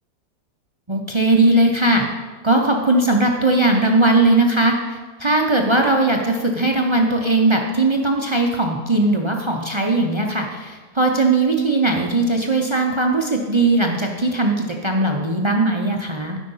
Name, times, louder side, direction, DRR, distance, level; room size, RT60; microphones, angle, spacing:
voice 1, 0.9-2.0 2.4-16.4, right 2 dB, 35° right, 2 dB, 0.4 m, -19 dB
12.5 x 5.4 x 5.5 m, 1.4 s
omnidirectional pair, 1.8 m